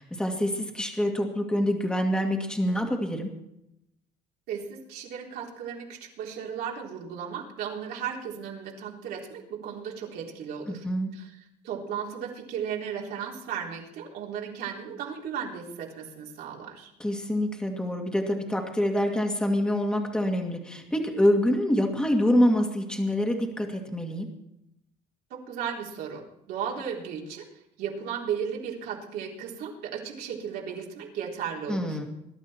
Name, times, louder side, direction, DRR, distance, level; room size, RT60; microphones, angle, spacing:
voice 1, 0.0-3.3 10.7-11.1 17.0-24.3 31.7-32.0, equal, 5° left, 2 dB, 2.2 m, -26 dB
voice 2, 4.5-10.8 11.1-11.4 11.6-16.9 25.3-27.5 27.8-32.1, right 7 dB, 70° right, -2 dB, 4.0 m, -35 dB
21.5 x 12.0 x 4.4 m, 0.82 s
cardioid pair, 150°, 17 cm